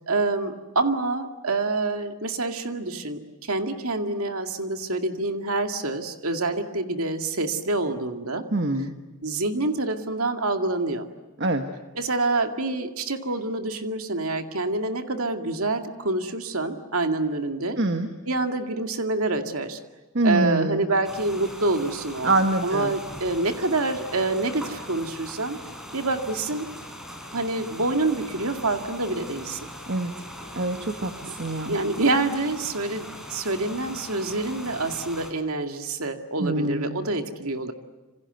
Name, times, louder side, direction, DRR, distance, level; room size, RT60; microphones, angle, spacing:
voice 1, 0.1-8.5 9.2-11.1 12.0-17.8 18.3-19.8 20.2-25.6 25.9-26.7 27.3-29.6 31.3-31.4 31.7-37.7, right 2 dB, 75° right, 6 dB, 2.2 m, -27 dB
voice 2, 8.5-8.9 11.4-11.6 17.8-18.1 20.1-20.9 22.2-22.9 29.8-30.1 30.5-31.7 36.4-37.1, right 2 dB, 50° right, 6 dB, 1.6 m, -25 dB
sound 1, 21.0-35.3, equal, ahead, 4.1 m, -41 dB
27.5 x 26.0 x 8.1 m, 1.2 s
head